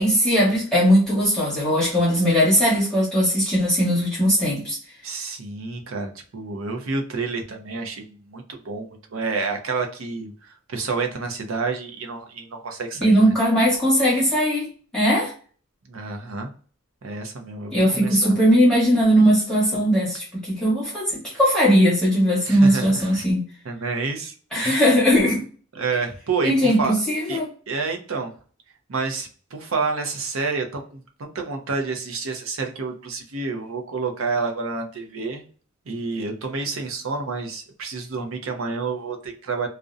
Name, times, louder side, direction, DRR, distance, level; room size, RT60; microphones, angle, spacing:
voice 1, 0.0-4.8 13.0-15.3 17.7-23.4 24.5-25.4 26.4-27.5, equal, 5° left, 1.0 m, -19 dB
voice 2, 5.0-13.2 15.9-16.5 17.0-18.3 22.4-23.3 23.6-24.9 25.8-26.9 27.3-27.4 27.7-28.3 28.9-35.4 35.9-39.7, right 4 dB, 65° right, 0.5 m, -29 dB
2.4 x 2.1 x 2.5 m
head